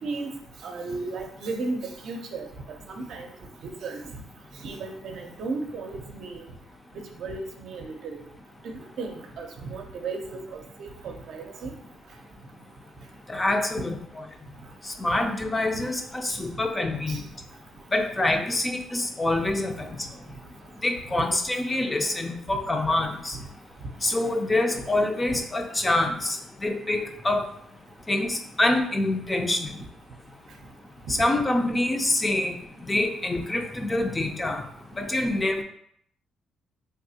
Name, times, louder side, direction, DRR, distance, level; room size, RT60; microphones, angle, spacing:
voice 1, 0.6-2.5 2.9-3.3 3.6-4.0 4.6-6.4 7.1-8.2 8.6-11.7 16.3-16.4 17.1-17.2 24.8-24.9 25.3-25.4, right 3 dB, 70° right, 3 dB, 0.5 m, -35 dB
voice 2, 13.3-14.2 14.9-17.2 17.9-19.9 20.8-23.4 24.0-27.5 28.1-29.8 31.1-32.6 32.8-34.6 35.0-35.6, left 2 dB, 20° left, 4 dB, 0.4 m, -26 dB
3.5 x 2.3 x 2.7 m, 0.67 s
cardioid pair, 90°, 0 cm